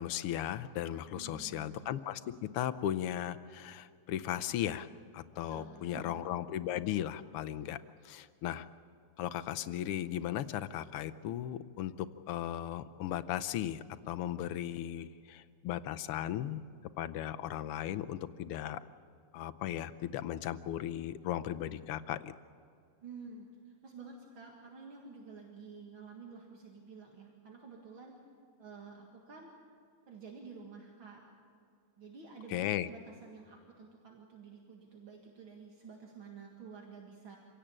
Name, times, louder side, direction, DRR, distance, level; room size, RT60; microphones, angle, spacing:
voice 1, 0.0-4.9 5.1-7.8 8.0-8.7 9.2-16.6 17.0-18.8 19.3-22.3 32.5-32.9, left 11 dB, 85° left, 11 dB, 1.7 m, -36 dB
voice 2, 1.1-1.8 5.4-6.2 23.0-28.2 28.6-29.5 30.1-31.2 32.0-37.4, right 5 dB, 65° right, 0 dB, 2.7 m, -50 dB
26.5 x 17.0 x 8.9 m, 2.3 s
omnidirectional pair, 2.4 m